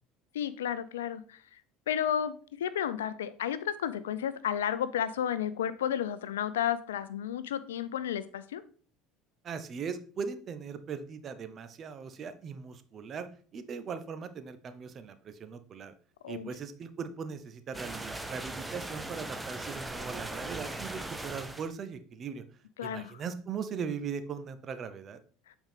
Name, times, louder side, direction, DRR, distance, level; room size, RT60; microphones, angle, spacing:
voice 1, 0.3-1.4 1.9-8.6 16.2-16.5 22.8-23.1, left 9 dB, 85° left, 15 dB, 0.5 m, -32 dB
voice 2, 9.4-13.3 13.5-15.9 16.3-22.4 22.8-25.2, right 6 dB, 45° right, 10 dB, 0.9 m, -39 dB
sound 1, 17.7-21.7, right 2 dB, 10° right, 0.9 m, -39 dB
7.9 x 4.6 x 3.6 m, 0.43 s
hypercardioid pair, 75°, 0 cm